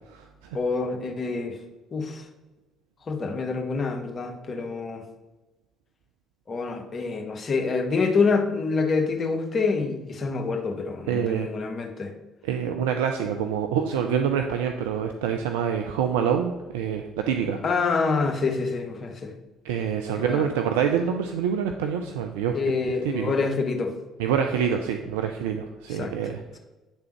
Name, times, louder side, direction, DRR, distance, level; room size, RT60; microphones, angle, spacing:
voice 1, 0.5-1.6 1.9-2.3 3.1-5.0 6.5-12.1 17.6-19.3 20.1-20.5 22.5-23.9 25.9-26.2, left 4 dB, 40° left, 4 dB, 0.9 m, -26 dB
voice 2, 11.1-11.5 12.4-17.6 19.6-22.6 23.0-23.3 24.2-26.6, right 8 dB, 70° right, 5 dB, 0.3 m, -26 dB
8.8 x 3.6 x 3.1 m, 1.1 s
figure-of-eight pair, 50°, 0 cm